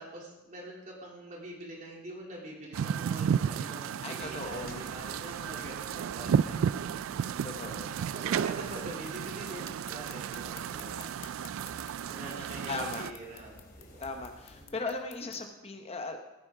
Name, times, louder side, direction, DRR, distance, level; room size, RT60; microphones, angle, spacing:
voice 1, 0.0-11.2 11.7-14.1 14.5-14.8, right 1 dB, 40° right, -2 dB, 3.1 m, -45 dB
sound 1, 2.7-13.1, right 8 dB, 75° right, 0.3 m, -33 dB
voice 2, 4.0-4.9 7.4-8.0 8.2-8.5 11.2-11.3 12.7-13.1 14.0-16.2, left 3 dB, 30° left, 5 dB, 0.9 m, -38 dB
sound 2, 4.2-14.6, left 1 dB, 50° left, 2.9 m, -53 dB
sound 3, 9.0-15.4, left 10 dB, 85° left, 1.2 m, -54 dB
17.0 x 9.5 x 3.8 m, 1.0 s
head